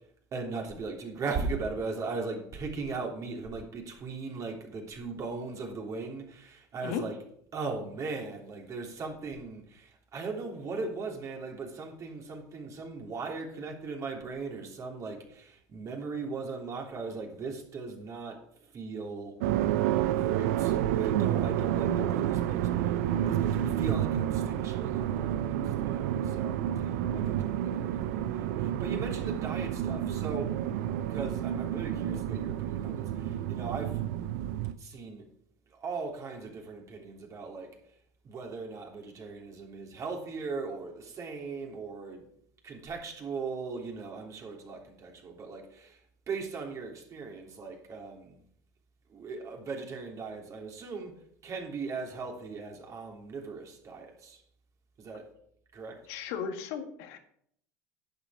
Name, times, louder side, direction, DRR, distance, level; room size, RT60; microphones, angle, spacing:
voice 1, 0.3-7.1 7.5-18.4 18.7-19.3 20.1-23.0 23.2-30.5 31.1-34.0 34.8-35.2 35.7-37.7 38.2-42.2 42.6-46.0 46.3-48.4 49.1-51.1 51.4-54.4 55.0-55.2 55.7-56.0, right 4 dB, 40° right, 3.3 m, -38 dB
sound 1, 19.4-34.7, right 11 dB, 75° right, 0.7 m, -29 dB
voice 2, 56.1-57.2, left 7 dB, 70° left, 1.7 m, -35 dB
11.0 x 8.0 x 5.0 m
hypercardioid pair, 80°, 8 cm